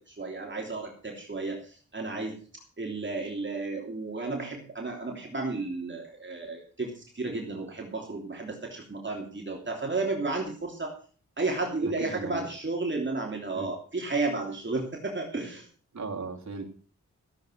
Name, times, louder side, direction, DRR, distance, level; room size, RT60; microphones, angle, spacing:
voice 1, 0.1-2.3 2.8-10.9 11.4-15.7, right 3 dB, 40° right, 0 dB, 3.1 m, -33 dB
voice 2, 11.8-12.5 13.5-13.7 15.9-16.7, right 4 dB, 70° right, 2 dB, 2.7 m, -37 dB
15.0 x 8.1 x 6.4 m, 0.41 s
wide cardioid pair, 100°, 30 cm